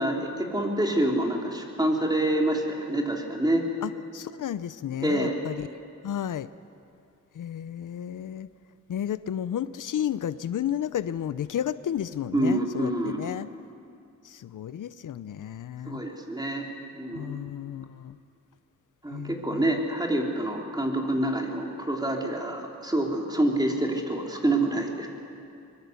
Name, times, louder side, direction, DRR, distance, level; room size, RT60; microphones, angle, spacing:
voice 1, 0.0-3.7 5.0-5.3 12.3-13.2 15.9-17.4 19.0-25.1, right 1 dB, 15° right, 0 dB, 3.7 m, -27 dB
voice 2, 3.8-5.7 6.0-6.5 7.3-8.5 8.9-13.5 14.2-16.0 17.1-18.2 19.1-19.8, left 10 dB, 85° left, 15 dB, 0.7 m, -32 dB
23.5 x 22.0 x 8.2 m, 2.5 s
wide cardioid pair, 90°, 30 cm